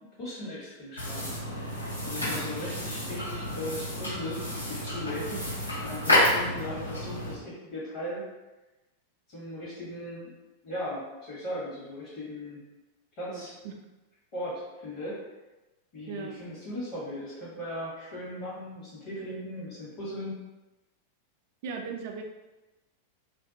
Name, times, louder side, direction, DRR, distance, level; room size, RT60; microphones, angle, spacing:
voice 1, 0.2-1.8 2.0-4.4 4.7-5.2 5.8-8.2 9.3-10.3 10.6-12.6 13.2-13.5 14.3-15.2 15.9-20.4, left 1 dB, 45° left, -9 dB, 1.1 m, -38 dB
sound 1, 1.0-7.3, left 1 dB, 90° left, 1.3 m, -30 dB
voice 2, 13.3-13.7 16.1-16.4 21.6-22.2, right 5 dB, 50° right, 3 dB, 0.3 m, -38 dB
2.5 x 2.1 x 2.7 m, 1.1 s
figure-of-eight pair, 90°, 0 cm